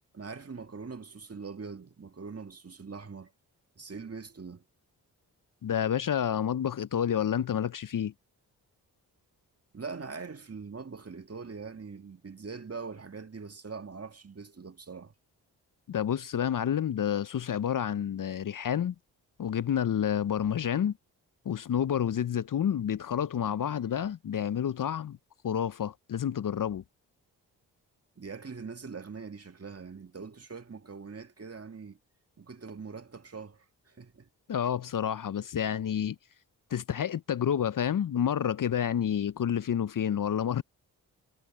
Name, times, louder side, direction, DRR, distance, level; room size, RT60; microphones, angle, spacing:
voice 1, 0.1-3.3 3.8-4.6 9.7-15.1 28.2-32.0 32.4-34.3, right 5 dB, 35° right, 2.0 m, -42 dB
voice 2, 5.6-8.1 15.9-18.9 19.4-20.9 21.4-25.2 25.4-26.8 34.5-36.2 36.7-40.6, left 9 dB, 50° left, 0.8 m, -29 dB
supercardioid pair, 40°, 43 cm